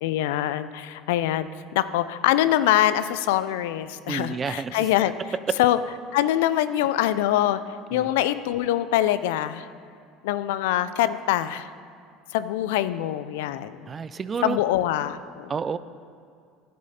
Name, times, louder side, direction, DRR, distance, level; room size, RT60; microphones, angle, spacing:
voice 1, 0.0-1.5 1.7-5.2 5.6-5.8 6.1-7.6 7.9-9.7 10.2-11.7 12.3-13.7 14.4-15.5, left 13 dB, 85° left, 14 dB, 0.4 m, -24 dB
voice 2, 4.1-4.9 5.5-5.6 7.9-8.1 13.9-14.6 15.5-15.8, right 6 dB, 30° right, 15 dB, 0.4 m, -29 dB
11.5 x 7.7 x 4.2 m, 2.3 s
supercardioid pair, 100°, 0 cm